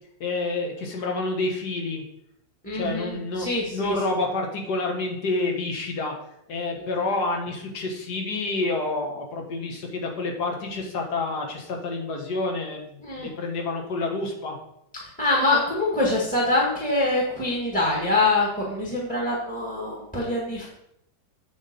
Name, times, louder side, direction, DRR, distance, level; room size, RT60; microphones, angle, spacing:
voice 1, 0.2-2.0 2.7-6.1 6.5-12.9 13.2-14.6, left 2 dB, 55° left, 1 dB, 1.8 m, -28 dB
voice 2, 2.6-3.9 13.0-13.3 15.0-20.7, left 2 dB, 5° left, -4 dB, 1.4 m, -24 dB
8.0 x 3.8 x 6.7 m, 0.76 s
omnidirectional pair, 2.2 m